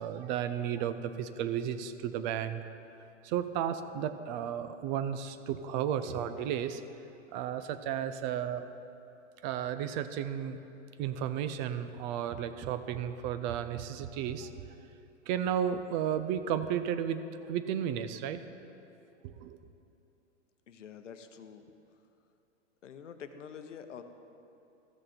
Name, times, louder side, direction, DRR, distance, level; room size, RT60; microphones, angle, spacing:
voice 1, 0.0-2.6 3.2-6.8 7.3-8.7 9.4-10.6 11.0-14.5 15.3-17.2 17.5-18.4 19.2-19.6, right 9 dB, 40° right, 11 dB, 0.5 m, -33 dB
voice 2, 20.7-21.7 22.8-24.0, left 7 dB, 90° left, 8 dB, 0.7 m, -47 dB
14.0 x 6.5 x 4.2 m, 2.7 s
hypercardioid pair, 115°, 36 cm